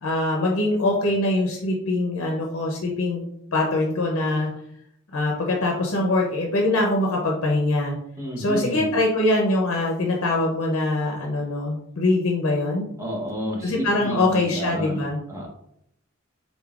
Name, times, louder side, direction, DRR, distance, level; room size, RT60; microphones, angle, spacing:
voice 1, 0.0-3.2 3.5-4.5 5.1-8.0 8.4-12.9 13.6-15.2, left 2 dB, 75° left, -1 dB, 0.6 m, -23 dB
voice 2, 8.2-8.8 13.0-15.0 15.3-15.5, equal, 15° right, -1 dB, 0.8 m, -30 dB
3.8 x 3.7 x 2.3 m, 0.73 s
head